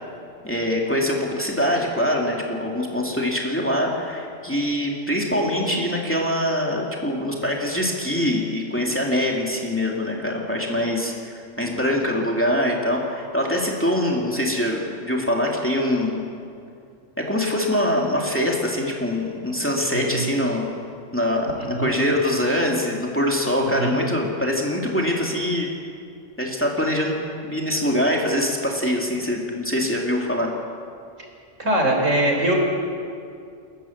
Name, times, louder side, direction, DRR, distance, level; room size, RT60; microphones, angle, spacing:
voice 1, 0.4-16.2 17.2-20.7 21.1-25.7 26.4-27.2 27.4-30.5, left 1 dB, 10° left, -1 dB, 2.7 m, -23 dB
voice 2, 19.9-20.3 21.6-21.9 23.8-24.0 31.6-32.5, right 1 dB, 75° right, 1 dB, 4.4 m, -22 dB
29.5 x 14.5 x 7.3 m, 2.4 s
omnidirectional pair, 1.3 m